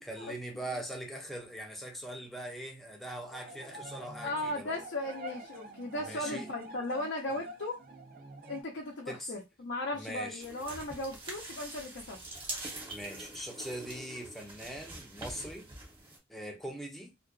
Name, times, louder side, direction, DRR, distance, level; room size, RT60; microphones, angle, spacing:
voice 1, 0.0-4.8 6.0-6.5 7.3-7.4 9.1-9.3 9.9-10.5 12.9-15.7 16.3-17.1, right 1 dB, ahead, 0.5 m, -41 dB
sound 1, 3.3-8.6, right 1 dB, 55° right, 0.5 m, -47 dB
voice 2, 4.2-7.8 8.5-12.2, left 1 dB, 80° left, 0.5 m, -37 dB
sound 2, 10.4-16.2, right 2 dB, 30° right, 0.8 m, -44 dB
2.5 x 2.2 x 2.3 m
head